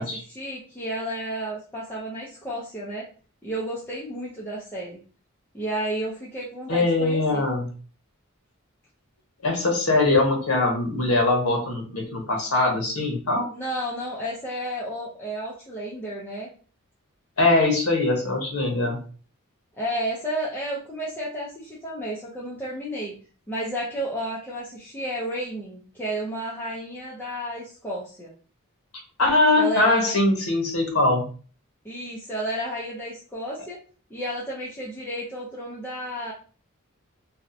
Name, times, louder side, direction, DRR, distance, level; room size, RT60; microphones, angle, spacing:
voice 1, 0.4-3.1 3.4-5.0 5.5-7.4 13.5-16.5 19.8-23.2 23.5-28.3 29.6-30.2 31.8-33.8 34.1-36.3, right 1 dB, 10° left, -6 dB, 0.4 m, -32 dB
voice 2, 6.7-7.7 9.4-13.5 17.4-19.0 29.2-31.3, left 2 dB, 90° left, 2 dB, 0.8 m, -22 dB
2.6 x 2.1 x 2.5 m, 0.40 s
head